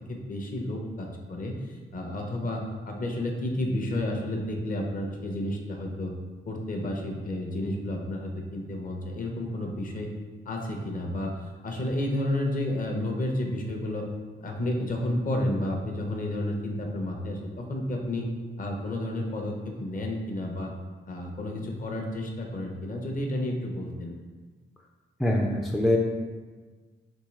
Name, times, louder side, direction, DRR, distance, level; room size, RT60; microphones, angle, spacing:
voice 1, 0.1-6.1 6.5-10.1 10.5-14.1 14.4-18.3 18.6-20.7 21.1-24.1, left 1 dB, 40° left, 1 dB, 0.6 m, -31 dB
voice 2, 25.2-26.0, left 1 dB, ahead, 0 dB, 0.3 m, -23 dB
3.5 x 2.7 x 3.1 m, 1.4 s
cardioid pair, 90°, 21 cm